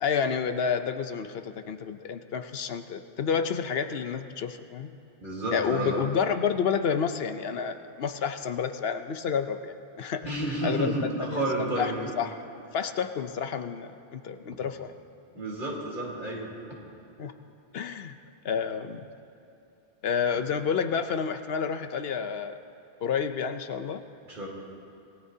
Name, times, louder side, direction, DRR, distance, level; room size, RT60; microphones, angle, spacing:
voice 1, 0.0-4.9 5.5-10.2 10.6-12.3 12.7-14.9 17.2-17.3 17.7-18.2 18.4-19.1 20.0-22.6 23.0-24.0, left 6 dB, 75° left, 9 dB, 0.9 m, -30 dB
voice 2, 5.2-6.1 10.2-12.0 15.3-16.5 24.3-24.5, right 1 dB, 55° right, -4 dB, 3.5 m, -30 dB
26.5 x 18.5 x 2.8 m, 2.9 s
omnidirectional pair, 1.0 m